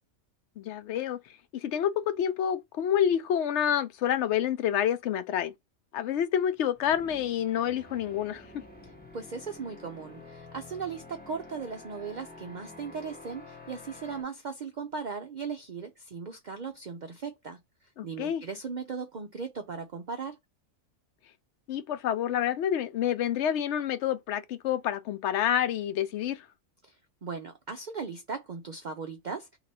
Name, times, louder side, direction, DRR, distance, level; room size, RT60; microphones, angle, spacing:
voice 1, 0.6-1.2 1.5-5.5 5.9-8.4 18.0-18.4 21.7-26.4, left 9 dB, 65° left, 0.8 m, -28 dB
sound 1, 6.5-14.2, left 2 dB, 10° left, 0.6 m, -49 dB
voice 2, 9.1-17.6 18.0-20.4 26.8-27.0 27.2-29.6, right 5 dB, 65° right, 0.4 m, -38 dB
3.1 x 2.9 x 4.0 m
omnidirectional pair, 1.4 m